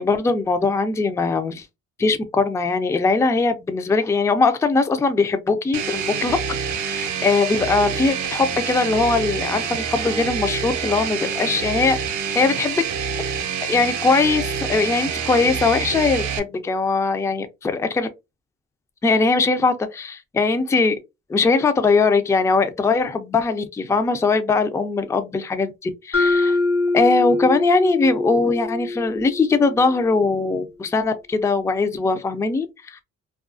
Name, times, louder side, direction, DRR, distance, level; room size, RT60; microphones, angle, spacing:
voice 1, 0.0-1.7 2.0-6.4 6.7-12.0 12.4-12.8 13.6-18.1 19.0-20.9 21.3-26.6 26.9-33.0, left 4 dB, 10° left, 0.3 m, -20 dB
sound 1, 5.7-16.4, right 7 dB, 70° right, 0.6 m, -27 dB
Mallet percussion, 26.1-30.2, left 3 dB, 50° left, 0.6 m, -24 dB
2.3 x 2.3 x 2.4 m
cardioid pair, 90°, 30 cm